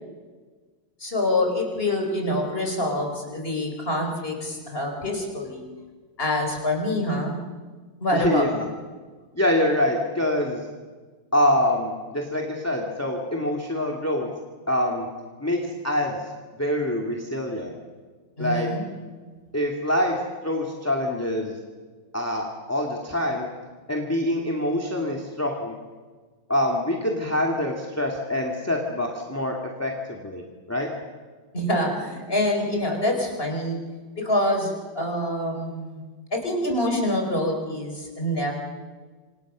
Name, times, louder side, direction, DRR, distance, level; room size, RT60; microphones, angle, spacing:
voice 1, 1.0-5.6 6.2-7.4 8.0-8.5 18.4-18.8 31.5-33.8 34.2-36.0 36.3-38.5, left 1 dB, 25° left, 2 dB, 4.9 m, -26 dB
voice 2, 8.1-8.7 9.3-10.6 11.3-14.3 14.7-15.1 15.4-16.2 16.6-17.8 18.4-18.7 19.5-21.5 22.1-23.5 23.9-25.8 26.5-30.4 30.7-30.9, left 1 dB, 5° left, 0 dB, 2.4 m, -25 dB
27.5 x 26.5 x 6.4 m, 1.4 s
omnidirectional pair, 2.2 m